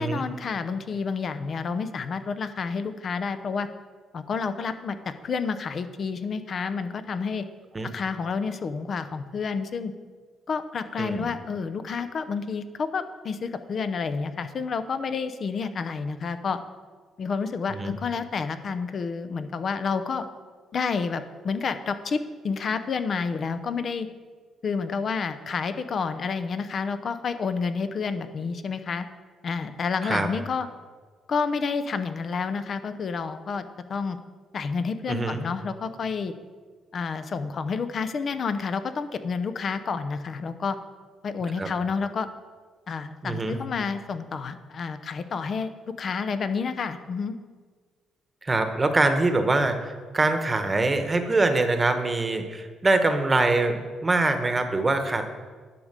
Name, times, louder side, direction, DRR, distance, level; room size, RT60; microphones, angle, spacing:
voice 1, 0.0-3.7 4.1-7.4 7.9-9.9 10.5-16.6 17.2-20.3 20.7-24.1 24.6-29.1 29.4-30.7 31.3-34.2 34.5-36.3 36.9-40.8 41.2-42.3 42.9-45.7 46.0-47.4, left 5 dB, 50° left, 11 dB, 0.7 m, -29 dB
voice 2, 11.0-11.3 17.7-18.0 30.0-30.3 35.1-35.4 41.6-41.7 43.2-43.6 48.4-55.3, right 2 dB, 25° right, 7 dB, 1.1 m, -24 dB
10.5 x 5.1 x 6.7 m, 1.5 s
cardioid pair, 100°, 0 cm